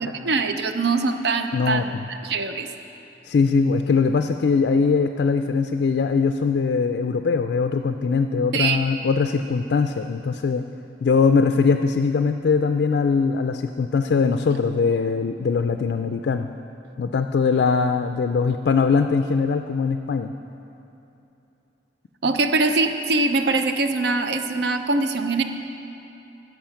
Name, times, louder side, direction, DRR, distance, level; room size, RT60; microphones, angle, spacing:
voice 1, 0.0-2.7 8.5-8.8 22.2-25.4, right 3 dB, 65° right, 7 dB, 0.6 m, -23 dB
voice 2, 1.5-2.0 3.2-10.6 11.0-16.5 17.0-20.3, left 5 dB, 60° left, 7 dB, 0.3 m, -21 dB
10.5 x 7.6 x 5.8 m, 2.9 s
head